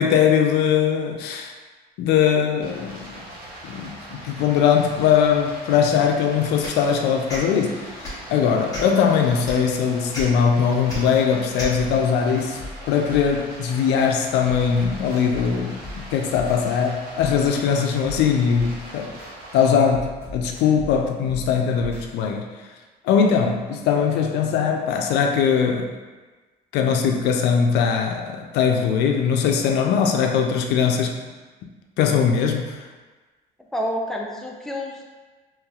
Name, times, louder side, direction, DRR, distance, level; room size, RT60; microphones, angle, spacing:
voice 1, 0.0-1.5 2.0-3.2 3.6-7.8 8.3-12.6 12.9-19.2 19.5-22.5 23.0-25.9 26.7-31.1 32.0-32.9, left 7 dB, 80° left, 2 dB, 0.4 m, -21 dB
Stream, 2.6-19.7, right 1 dB, 60° right, 0.8 m, -41 dB
sound 1, 6.6-6.8 7.3-7.4 8.0-8.2 8.7-9.0 9.4-9.6 10.1-10.2 10.9-11.0 11.6-11.7, left 1 dB, 20° left, 1.1 m, -31 dB
sound 2, 11.7-13.8 14.2-16.8 17.1-19.3 19.7-22.3, left 1 dB, 15° right, 1.4 m, -39 dB
voice 2, 33.7-35.0, equal, ahead, -1 dB, 0.4 m, -28 dB
3.3 x 3.0 x 2.3 m, 1.3 s
cardioid pair, 110°, 17 cm